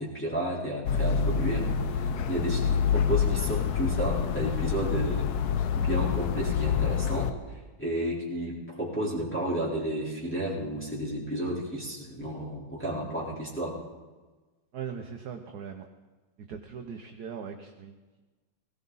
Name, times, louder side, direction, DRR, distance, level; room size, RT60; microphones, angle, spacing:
voice 1, 0.0-5.3 5.8-13.8, right 1 dB, 5° left, -7 dB, 3.7 m, -32 dB
sound 1, 0.9-7.3, left 7 dB, 65° left, 1.0 m, -27 dB
voice 2, 14.7-15.9 16.5-18.2, right 7 dB, 60° right, 5 dB, 1.2 m, -40 dB
18.5 x 17.0 x 4.0 m, 1.3 s
omnidirectional pair, 2.4 m